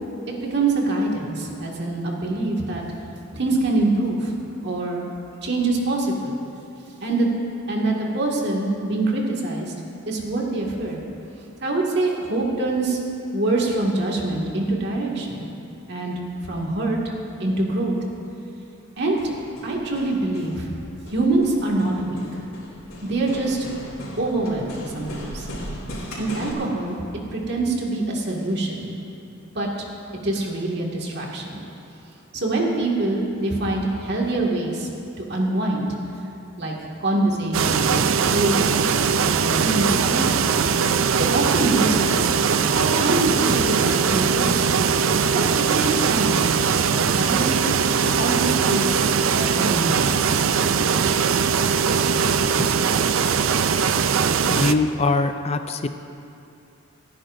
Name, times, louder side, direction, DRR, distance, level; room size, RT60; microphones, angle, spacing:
voice 1, 0.5-2.8 3.3-4.4 4.6-5.0 5.4-6.3 7.0-7.3 7.7-9.7 10.1-11.0 11.6-13.0 13.3-15.5 15.9-16.2 16.4-17.0 17.4-17.9 19.0-19.3 19.6-20.7 21.1-22.2 23.0-23.7 24.2-25.5 26.2-27.0 27.3-28.9 29.5-29.7 30.2-31.6 32.3-34.9 35.2-35.9 36.6-36.7 37.0-38.0 38.3-39.1 39.4-40.5 41.2-42.3 42.7-44.7 45.3-46.5 46.8-47.7 48.2-49.0 49.4-50.4, right 2 dB, 55° right, -2 dB, 2.1 m, -24 dB
Hammer, 19.0-26.5, equal, 85° left, 3.4 m, -37 dB
sound 1, 37.5-54.7, right 6 dB, 75° right, 0.5 m, -20 dB
voice 2, 54.5-55.9, left 3 dB, 30° left, 8 dB, 0.4 m, -22 dB
29.5 x 10.0 x 2.7 m, 2.7 s
head